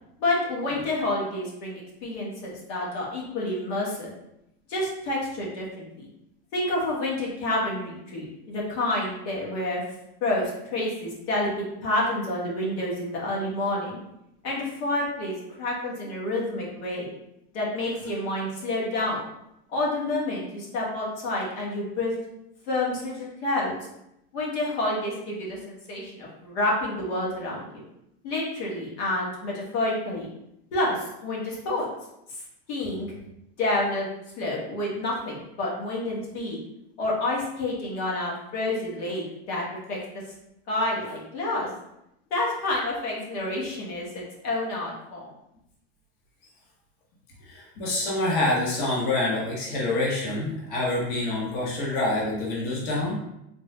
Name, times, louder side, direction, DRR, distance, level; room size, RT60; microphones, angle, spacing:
voice 1, 0.2-4.1 4.7-6.1 6.5-9.8 10.2-14.0 14.4-17.1 17.5-19.3 19.7-22.1 22.7-23.7 24.3-27.8 28.2-30.3 30.7-31.9 32.7-33.1 33.6-34.1 34.4-36.6 37.0-40.0 40.7-41.7 42.3-45.3, left 1 dB, 85° left, -4 dB, 1.4 m, -29 dB
voice 2, 47.4-53.2, left 2 dB, 30° left, -5 dB, 0.8 m, -26 dB
3.7 x 2.2 x 3.2 m, 0.83 s
supercardioid pair, 165°, 32 cm